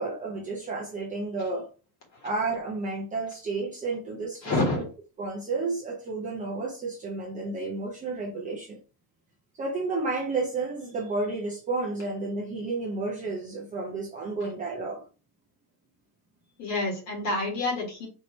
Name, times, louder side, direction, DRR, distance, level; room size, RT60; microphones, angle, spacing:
voice 1, 0.0-1.7 2.2-4.8 5.2-8.8 9.5-15.0, right 3 dB, 20° right, 0.6 m, -31 dB
voice 2, 4.4-4.8 16.6-18.1, left 2 dB, 35° left, 1.7 m, -28 dB
4.6 x 2.8 x 3.1 m
cardioid pair, 165°, 45 cm